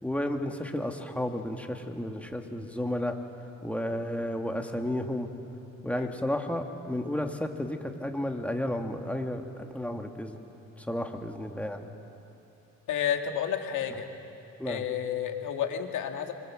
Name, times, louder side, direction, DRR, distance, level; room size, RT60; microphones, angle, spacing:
voice 1, 0.0-3.1 3.6-5.3 5.8-10.4 10.8-11.9 14.6-14.8, left 1 dB, 5° left, 3 dB, 2.2 m, -32 dB
voice 2, 12.9-14.1 14.7-16.3, left 9 dB, 80° left, 4 dB, 2.2 m, -31 dB
25.0 x 24.5 x 7.7 m, 3.0 s
cardioid pair, 90°, 30 cm